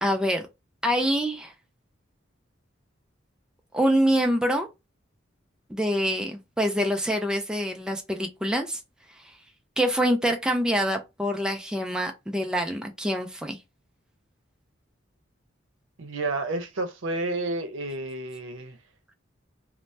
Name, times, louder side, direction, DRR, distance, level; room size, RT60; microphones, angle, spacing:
voice 1, 0.0-0.5 0.8-1.5 3.7-4.7 5.7-8.8 9.8-13.6, equal, 5° right, 0.3 m, -25 dB
voice 2, 16.0-18.8, right 2 dB, 85° right, 0.7 m, -30 dB
2.6 x 2.0 x 3.2 m
head